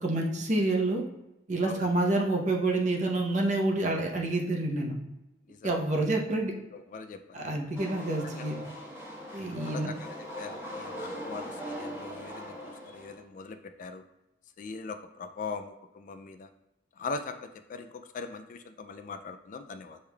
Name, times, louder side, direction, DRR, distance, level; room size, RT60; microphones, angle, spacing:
voice 1, 0.0-1.0 1.5-4.9 5.6-6.5 7.3-8.6 9.3-9.9, right 2 dB, 40° right, 1 dB, 0.8 m, -28 dB
voice 2, 6.7-7.4 8.0-8.5 9.5-10.1 10.4-14.0 14.6-16.5 17.0-20.0, left 4 dB, 45° left, 8 dB, 0.3 m, -41 dB
sound 1, 7.7-13.2, equal, 10° right, 1.2 m, -40 dB
7.2 x 3.2 x 2.3 m, 0.95 s
head